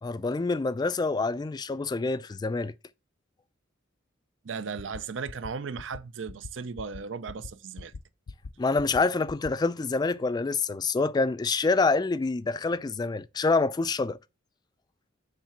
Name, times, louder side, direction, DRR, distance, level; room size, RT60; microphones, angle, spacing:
voice 1, 0.0-2.7 8.6-14.2, left 3 dB, 20° left, 0.3 m, -26 dB
voice 2, 4.4-7.9, right 5 dB, 75° right, 0.5 m, -36 dB
sound 1, 4.8-5.0 5.3-5.5 5.8-6.0 6.3-6.5 6.8-7.0 7.3-7.5 7.8-8.0 8.3-8.5 8.8-9.0 9.3-9.5, left 4 dB, 90° left, 0.5 m, -40 dB
7.4 x 3.3 x 5.8 m
head